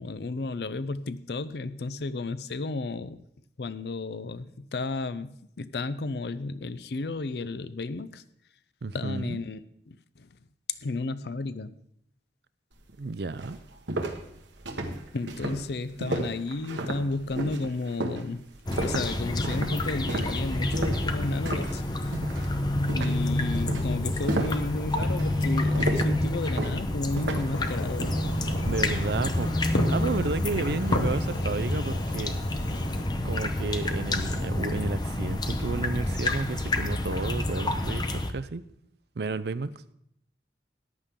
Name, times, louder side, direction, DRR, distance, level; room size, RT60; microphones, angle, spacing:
voice 1, 0.0-3.2 3.6-8.2 8.9-9.6 9.9-10.3 10.7-11.7 15.1-18.5 18.8-22.1 22.9-28.1, left 3 dB, 65° left, 0.5 m, -32 dB
voice 2, 8.8-9.4 13.0-13.6 28.6-32.4 33.2-38.6 39.2-39.7, right 3 dB, 65° right, 0.5 m, -32 dB
sound 1, 12.9-13.0 13.4-21.8 22.1-22.5 22.9-27.6, right 2 dB, 85° right, 1.4 m, -33 dB
sound 2, 18.7-38.3, left 1 dB, 25° left, 0.7 m, -28 dB
Fireworks, 27.5-33.0, left 1 dB, 80° left, 1.7 m, -33 dB
14.0 x 10.0 x 3.7 m
head